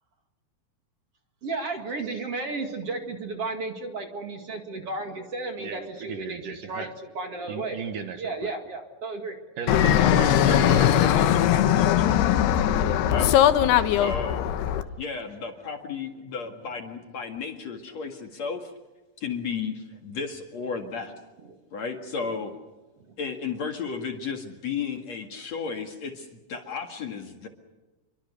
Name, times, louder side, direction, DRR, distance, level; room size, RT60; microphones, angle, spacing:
voice 1, 1.4-7.8 8.2-9.4 13.7-14.2 14.6-14.8 21.4-21.6 23.0-23.1 25.3-25.4, right 3 dB, 45° right, 4 dB, 2.6 m, -34 dB
voice 2, 5.6-6.9 7.5-8.5 9.6-11.1, right 6 dB, 60° right, 7 dB, 2.8 m, -35 dB
Fixed-wing aircraft airplane, 9.7-14.8, left 11 dB, 80° left, 3.1 m, -20 dB
voice 3, 10.4-12.5 13.1-13.4 14.0-14.4 15.0-18.7 19.2-21.1 21.7-22.5 23.2-27.5, left 5 dB, 50° left, 4 dB, 2.7 m, -33 dB
28.5 x 23.5 x 6.8 m, 1.1 s
omnidirectional pair, 4.6 m